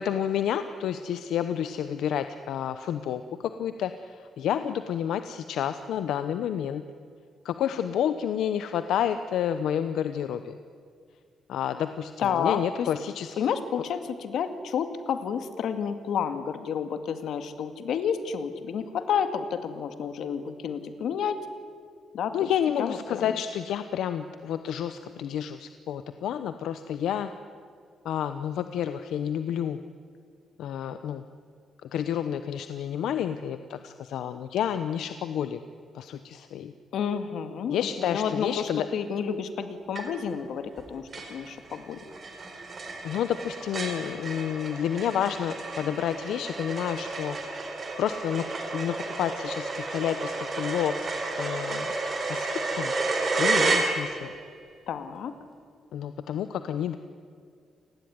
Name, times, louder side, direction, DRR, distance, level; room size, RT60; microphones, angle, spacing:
voice 1, 0.0-3.2 3.6-6.8 7.4-10.6 11.5-13.4 22.3-27.3 28.0-29.8 30.6-31.2 31.8-35.6 35.9-36.7 37.7-38.9 43.0-47.7 48.0-51.1 51.4-51.9 52.3-52.9 53.4-54.3 55.9-57.0, left 9 dB, 90° left, 10 dB, 1.0 m, -30 dB
voice 2, 12.2-12.9 13.4-21.5 22.1-22.5 22.8-23.3 36.9-42.0 54.9-55.3, left 7 dB, 70° left, 9 dB, 2.1 m, -30 dB
sound 1, 39.9-40.4 40.7-40.8 41.1-54.4, right 3 dB, 30° right, 4.3 m, -31 dB
29.0 x 19.5 x 9.6 m, 2.2 s
cardioid pair, 170°, 0 cm